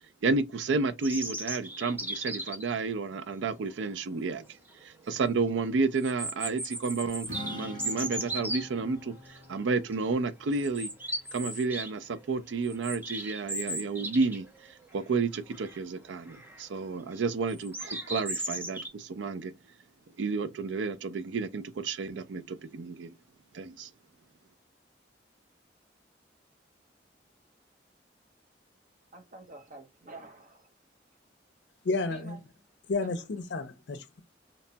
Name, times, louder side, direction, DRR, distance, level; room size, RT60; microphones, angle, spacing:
voice 1, 0.2-10.9 11.3-19.5 20.2-23.1 23.5-23.9, right 4 dB, 85° right, 0.4 m, -31 dB
sound 1, 1.0-2.7 4.3-4.4 4.8-4.9 6.0-8.6 9.3-9.6 9.9-10.1 10.5-11.9 12.2-14.5 14.8-14.9 15.3-15.8 16.3-16.6 17.5-18.9, right 1 dB, 10° right, 0.6 m, -36 dB
Strum, 7.3-13.5, left 2 dB, 25° left, 0.8 m, -47 dB
voice 2, 29.1-30.7 32.1-32.4 33.0-33.3, right 2 dB, 45° right, 0.7 m, -48 dB
voice 3, 31.8-32.4 32.9-34.2, left 3 dB, 70° left, 0.5 m, -31 dB
2.9 x 2.2 x 2.7 m
head